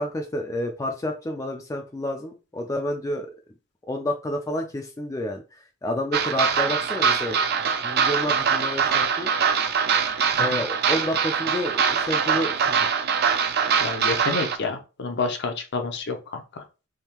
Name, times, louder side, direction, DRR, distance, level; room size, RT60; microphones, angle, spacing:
voice 1, 0.0-3.3 3.9-5.4 5.8-9.3 10.3-12.9, left 1 dB, 15° left, 2 dB, 0.3 m, -29 dB
sound 1, 6.1-14.6, right 6 dB, 50° right, 0.4 m, -23 dB
voice 2, 13.8-16.4, left 3 dB, 55° left, 5 dB, 0.6 m, -29 dB
3.5 x 2.7 x 2.9 m, 0.31 s
head